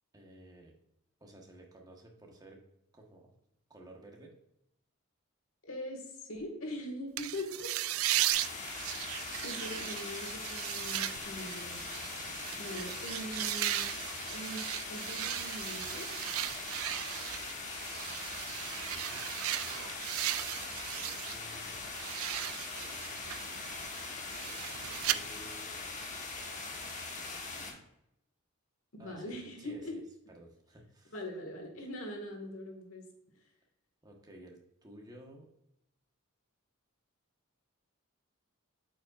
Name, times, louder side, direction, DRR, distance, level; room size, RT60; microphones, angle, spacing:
voice 1, 0.1-0.7 1.2-2.6 2.9-3.3 3.7-4.3 8.1-8.3 12.2-12.5 18.4-20.0 20.7-21.8 25.0-25.8 27.2-27.8 29.0-30.0 30.3-31.2 34.0-35.5, right 1 dB, 15° right, 0 dB, 1.1 m, -54 dB
voice 2, 5.6-7.7 9.4-11.9 12.6-14.0 14.3-16.1 28.9-30.0 31.1-33.1, left 1 dB, 65° left, 2 dB, 1.8 m, -42 dB
sound 1, 7.2-21.4 21.7-25.2, right 13 dB, 70° right, 0.3 m, -37 dB
sound 2, 8.3-27.7, left 3 dB, 35° left, 1.2 m, -41 dB
8.6 x 5.2 x 2.4 m, 0.81 s
head